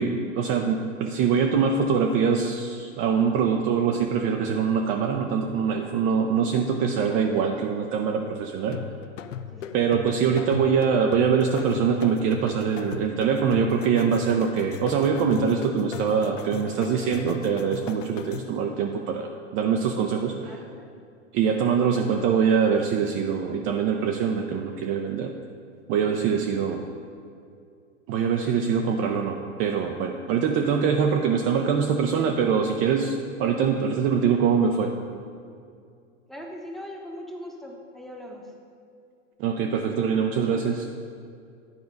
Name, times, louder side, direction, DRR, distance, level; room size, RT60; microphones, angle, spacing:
voice 1, 0.0-8.8 9.7-20.4 21.3-25.3 25.9-26.9 28.1-34.9 39.4-40.9, right 6 dB, 35° right, 3 dB, 0.5 m, -23 dB
voice 2, 7.1-7.5 9.5-9.8 20.4-21.0 32.1-32.4 36.3-38.5, left 1 dB, ahead, 0 dB, 0.9 m, -41 dB
sound 1, 8.7-18.6, left 9 dB, 85° left, 0.5 m, -38 dB
9.7 x 4.6 x 5.2 m, 2.4 s
hypercardioid pair, 105°, 37 cm